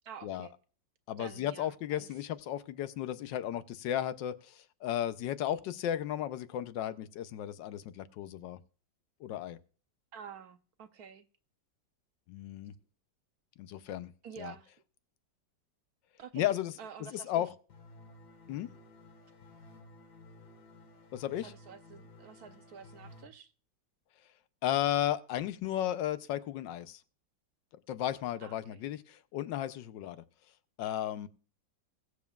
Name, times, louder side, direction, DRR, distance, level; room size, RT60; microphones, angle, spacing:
voice 1, 0.0-0.5 1.2-2.1 10.1-11.3 14.2-14.7 16.2-17.4 21.3-23.5 28.4-28.8, right 7 dB, 65° right, 1.1 m, -49 dB
voice 2, 1.1-8.6 9.2-9.6 12.3-12.7 13.6-14.1 14.4-14.5 16.3-16.7 17.1-17.5 18.5-18.7 21.1-21.5 24.6-27.0 27.9-30.2 30.8-31.3, left 11 dB, 85° left, 1.3 m, -34 dB
sound 1, 17.7-23.3, left 2 dB, 65° left, 2.2 m, -54 dB
21.0 x 7.2 x 2.3 m
omnidirectional pair, 1.9 m